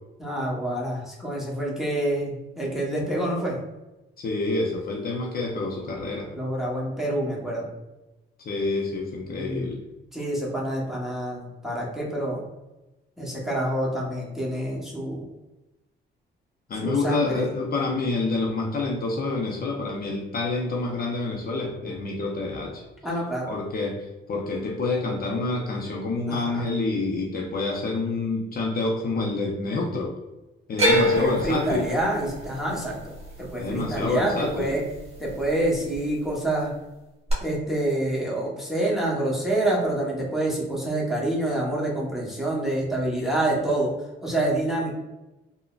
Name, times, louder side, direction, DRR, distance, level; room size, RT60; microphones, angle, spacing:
voice 1, 0.2-3.6 6.3-7.7 9.3-9.7 10.1-12.4 13.2-15.2 16.8-17.5 23.0-23.5 26.3-26.6 30.9-33.1 33.4-34.8 35.2-36.7 37.4-43.9 44.2-44.9, right 1 dB, ahead, -5 dB, 1.0 m, -27 dB
voice 2, 4.2-6.3 8.4-9.8 16.7-22.8 23.5-30.1 30.7-31.9 33.6-34.7, left 3 dB, 50° left, -1 dB, 0.6 m, -27 dB
sound 1, 30.8-35.0 35.3-36.0 37.3-37.4, equal, 30° right, 1.1 m, -26 dB
3.6 x 2.1 x 2.4 m, 1.0 s
cardioid pair, 90°, 20 cm